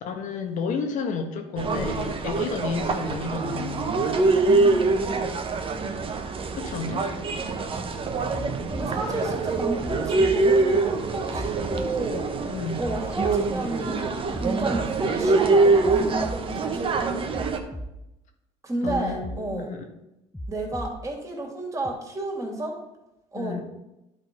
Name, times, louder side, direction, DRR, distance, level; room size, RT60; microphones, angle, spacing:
voice 1, 0.0-3.9 6.5-7.0 12.4-12.8 18.8-19.8 23.3-23.6, left 5 dB, 60° left, 5 dB, 1.5 m, -31 dB
sound 1, 1.6-17.6, right 3 dB, 35° right, 1.2 m, -24 dB
sound 2, 8.3-8.9 9.8-10.4 11.3-11.9 12.8-13.4 14.3-14.9 15.8-16.4 17.3-17.9 18.8-19.4 20.3-20.9 21.8-21.9, equal, 5° left, 0.9 m, -36 dB
voice 2, 8.7-12.2 12.8-16.9 18.6-19.7 20.5-22.8 23.3-23.6, right 2 dB, 20° right, 0 dB, 2.9 m, -31 dB
11.0 x 4.0 x 5.3 m, 0.91 s
supercardioid pair, 85°, 15 cm